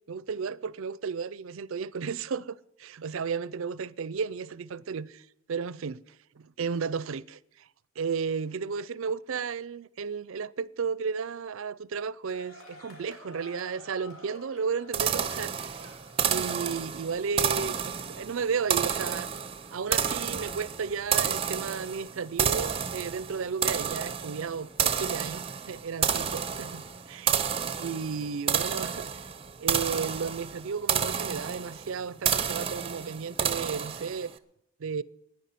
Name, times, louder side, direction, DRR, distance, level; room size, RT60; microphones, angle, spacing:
voice 1, 0.1-6.0 6.4-7.7 8.0-15.9 16.3-19.3 19.7-27.4 27.8-29.1 29.6-34.3 34.8-35.0, right 5 dB, 70° right, 0.5 m, -33 dB
sound 1, 12.3-29.1, left 1 dB, 75° left, 3.4 m, -55 dB
sound 2, 14.9-34.3, right 8 dB, 25° right, 0.6 m, -30 dB
11.0 x 9.8 x 9.5 m
head